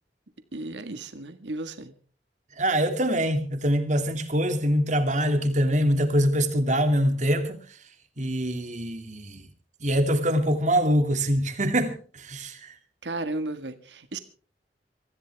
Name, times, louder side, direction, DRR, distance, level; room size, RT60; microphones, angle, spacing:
voice 1, 0.5-2.0 13.0-14.2, right 2 dB, 85° right, 1.8 m, -34 dB
voice 2, 2.6-7.6 8.2-9.5 9.8-12.7, equal, 45° right, 2.6 m, -24 dB
24.5 x 15.0 x 3.5 m
head